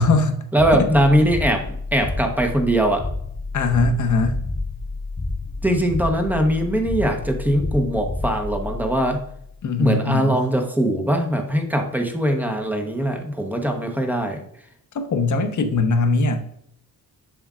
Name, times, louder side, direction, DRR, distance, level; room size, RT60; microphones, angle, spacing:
voice 1, 0.0-0.4 0.8-0.9 3.5-4.4 9.6-10.4 14.9-16.4, left 3 dB, 55° left, 6 dB, 1.0 m, -20 dB
voice 2, 0.5-1.7 1.9-3.1 5.6-9.2 9.8-14.4, right 1 dB, 5° right, 4 dB, 1.0 m, -21 dB
sound 1, 0.6-9.7, left 3 dB, 15° left, 0.4 m, -30 dB
7.4 x 7.0 x 2.4 m, 0.69 s
wide cardioid pair, 145°, 36 cm